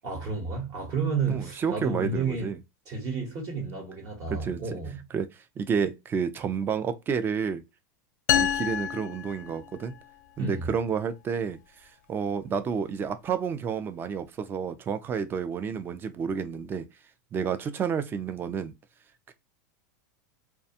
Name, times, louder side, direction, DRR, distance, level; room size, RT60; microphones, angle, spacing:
voice 1, 0.0-2.5 2.9-5.0 10.4-10.7, right 4 dB, 40° right, 1.0 m, -31 dB
voice 2, 1.3-2.6 4.3-4.6 5.1-7.6 8.3-10.0 10.4-11.6 12.1-16.8 17.3-18.7 19.3-19.4, right 6 dB, 20° right, 0.4 m, -30 dB
sound 1, 8.3-10.1, left 9 dB, 65° left, 0.4 m, -28 dB
2.5 x 2.2 x 2.8 m
supercardioid pair, 130°, 10 cm